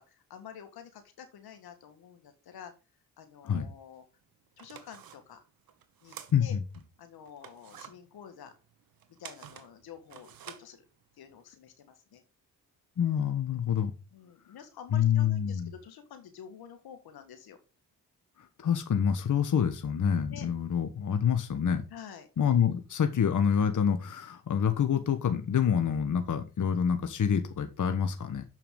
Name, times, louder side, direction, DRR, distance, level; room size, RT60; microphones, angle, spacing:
voice 1, 0.0-2.7 3.2-4.0 4.6-5.5 6.0-6.6 7.0-8.6 9.1-10.8 11.2-12.2 14.1-17.6 20.3-20.5 21.9-22.3, left 8 dB, 80° left, 1.7 m, -49 dB
sound 1, 3.9-4.0 4.5-6.8 7.2-11.4, right 9 dB, 65° right, 1.1 m, -50 dB
voice 2, 6.3-6.6 13.0-13.9 14.9-15.7 18.4-21.8 22.4-28.4, left 8 dB, 55° left, 1.3 m, -27 dB
7.3 x 5.7 x 5.3 m
cardioid pair, 60°, 37 cm